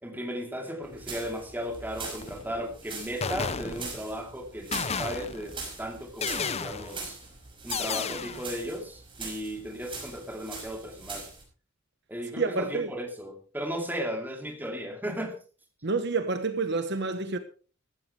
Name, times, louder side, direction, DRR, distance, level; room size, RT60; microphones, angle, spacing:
voice 1, 0.0-7.2 7.6-11.3 12.1-15.4, equal, 10° right, 2.5 m, -36 dB
sound 1, 0.8-11.4, right 4 dB, 25° right, 5.9 m, -42 dB
sound 2, 2.2-2.6 3.2-4.1 4.7-5.6 6.2-7.1 7.7-8.6, left 5 dB, 30° left, 0.7 m, -33 dB
voice 2, 12.4-12.9 15.8-17.4, right 3 dB, 55° right, 1.1 m, -28 dB
15.0 x 14.5 x 3.3 m
head